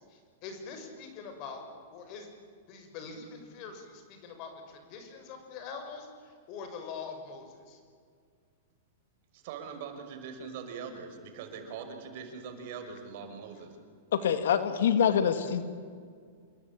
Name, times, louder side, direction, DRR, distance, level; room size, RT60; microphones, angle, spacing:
voice 1, 0.0-1.6 1.9-2.3 2.7-7.8, left 5 dB, 45° left, 6 dB, 6.6 m, -44 dB
voice 2, 9.3-13.7, right 6 dB, 55° right, 4 dB, 5.7 m, -42 dB
voice 3, 14.1-15.6, left 8 dB, 80° left, 10 dB, 2.0 m, -25 dB
28.0 x 21.5 x 9.0 m, 2.1 s
hypercardioid pair, 130°, 0 cm